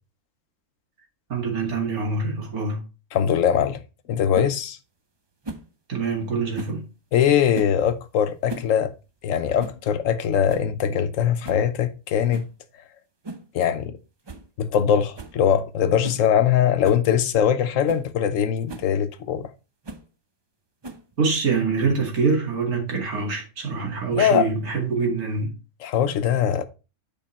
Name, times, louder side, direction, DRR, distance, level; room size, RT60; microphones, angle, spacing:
voice 1, 1.3-2.8 5.9-6.8 21.2-25.5, right 4 dB, 90° right, 2.6 m, -25 dB
voice 2, 3.1-3.8 4.1-4.8 7.1-8.9 9.2-12.4 13.5-14.0 14.6-19.5 24.1-24.5 25.8-26.6, left 9 dB, 65° left, 1.1 m, -21 dB
sound 1, 4.3-4.5 5.4-5.7 6.5-6.8 7.5-7.8 8.3-8.7 9.0-9.1 9.6-9.8 10.2-10.3 10.5-10.7 11.4-11.7 12.3-12.5 13.2-13.5 13.8-13.9 14.2-14.5 14.7-14.8 15.2-15.4 16.0-16.2 16.8-17.0 17.5-17.6 17.9-18.1 18.7-18.9 19.8-20.1 20.8-21.2, right 2 dB, 30° right, 0.5 m, -37 dB
7.5 x 5.0 x 4.3 m
omnidirectional pair, 1.5 m